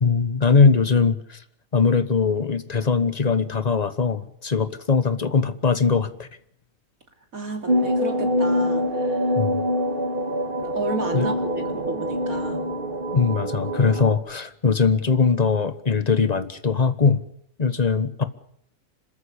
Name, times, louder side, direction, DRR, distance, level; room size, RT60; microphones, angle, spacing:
voice 1, 0.0-1.4 1.7-6.3 9.3-9.6 11.1-11.3 13.1-17.2 17.6-18.2, left 5 dB, 30° left, 12 dB, 1.2 m, -21 dB
voice 2, 7.3-9.4 10.6-12.7, right 2 dB, 80° right, 5 dB, 3.5 m, -32 dB
sound 1, 7.7-14.1, equal, 40° right, 1.9 m, -25 dB
26.0 x 14.0 x 8.4 m, 0.70 s
omnidirectional pair, 1.4 m